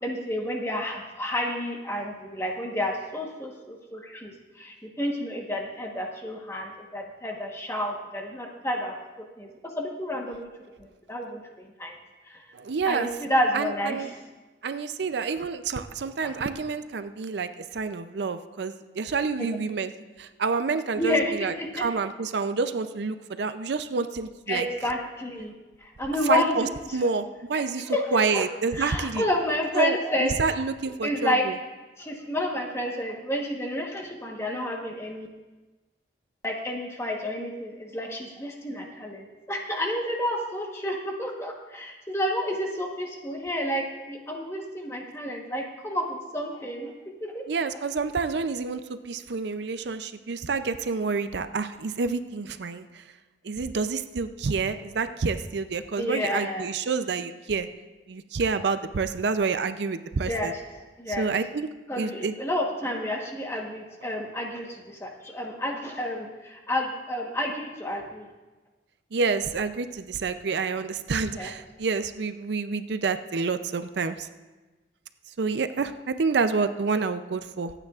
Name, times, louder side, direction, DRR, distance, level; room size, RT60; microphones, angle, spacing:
voice 1, 0.0-9.0 9.4-9.5 9.8-10.5 10.8-11.9 12.3-12.4 12.9-14.2 16.2-16.3 21.0-21.8 24.5-25.5 25.8-26.5 26.9-27.1 27.5-28.4 28.7-30.4 31.0-31.5 32.0-35.3 36.4-46.9 47.2-47.4 56.0-56.7 60.2-60.5 61.0-61.3 61.9-68.3 71.4-71.5, left 1 dB, 15° left, 1 dB, 1.2 m, -30 dB
voice 2, 12.5-13.1 13.5-14.1 14.6-19.9 20.2-24.7 26.2-29.2 29.8-31.5 47.5-53.0 53.4-57.7 58.1-60.5 61.1-61.7 62.0-62.3 69.1-74.3 75.4-77.7, right 4 dB, 65° right, 10 dB, 0.5 m, -28 dB
24.5 x 9.0 x 2.4 m, 1.2 s
head